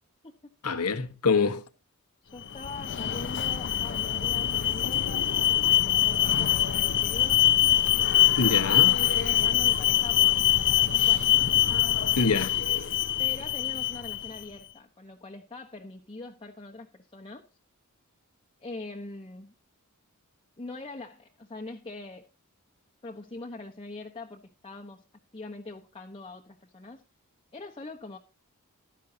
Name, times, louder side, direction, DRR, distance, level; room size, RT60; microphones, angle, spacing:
voice 1, 0.6-1.6 8.4-9.0 12.2-12.6, left 4 dB, 90° left, 1.4 m, -25 dB
voice 2, 2.2-7.5 8.5-11.6 13.2-17.4 18.6-19.5 20.6-22.3 23.0-25.0 25.3-27.0 27.5-28.2, left 2 dB, 25° left, 1.1 m, -43 dB
Alarm, 2.4-14.4, left 11 dB, 55° left, 0.7 m, -24 dB
15.0 x 12.0 x 2.8 m
head